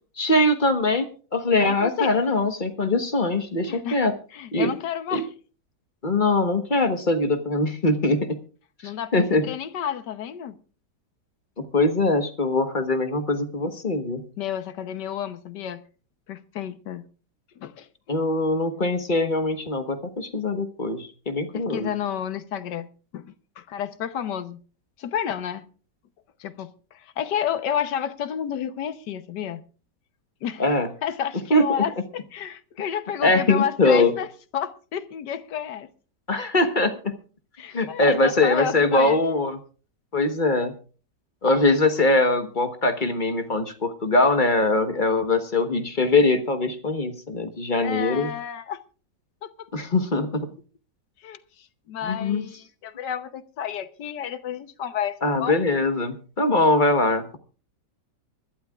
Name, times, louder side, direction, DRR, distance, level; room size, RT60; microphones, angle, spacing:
voice 1, 0.2-4.1 4.5-4.7 5.1-5.2 6.0-8.4 8.8-9.5 11.6-14.2 18.1-21.9 30.6-30.9 31.5-31.6 33.2-34.1 36.3-37.1 37.7-39.6 40.1-40.7 41.4-48.3 49.7-50.5 52.0-52.5 55.2-57.4, left 2 dB, 30° left, 1.3 m, -22 dB
voice 2, 1.6-2.1 3.7-4.0 4.3-5.3 8.8-10.6 14.4-15.8 16.3-17.1 17.6-17.9 21.5-24.6 25.0-25.6 26.4-29.6 30.4-30.6 31.0-34.3 34.5-35.9 37.6-39.2 47.8-48.8 49.4-49.7 51.2-55.6, left 9 dB, 80° left, 1.6 m, -31 dB
25.0 x 12.0 x 2.4 m
omnidirectional pair, 1.8 m